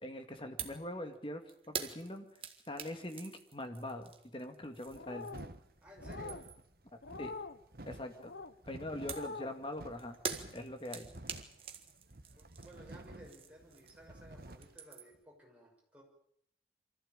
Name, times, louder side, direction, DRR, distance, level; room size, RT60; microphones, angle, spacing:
voice 1, 0.0-2.3 2.7-5.3 6.9-7.3 7.8-8.3 8.7-10.1 10.5-11.1, left 1 dB, 30° left, 5 dB, 2.2 m, -43 dB
sound 1, 0.6-0.9 1.1-5.6 6.0-6.7 9.1-14.2 14.5-15.2, right 6 dB, 30° right, 1.7 m, -45 dB
sound 2, 4.9-5.5 6.0-6.4 7.0-7.6 8.2-8.5 9.0-9.5, left 4 dB, 85° left, 1.0 m, -45 dB
sound 3, 4.9-14.8, right 1 dB, 55° right, 1.3 m, -52 dB
voice 2, 5.8-6.5 12.4-16.0, right 1 dB, 10° right, -1 dB, 6.1 m, -56 dB
24.5 x 15.0 x 9.0 m, 0.74 s
head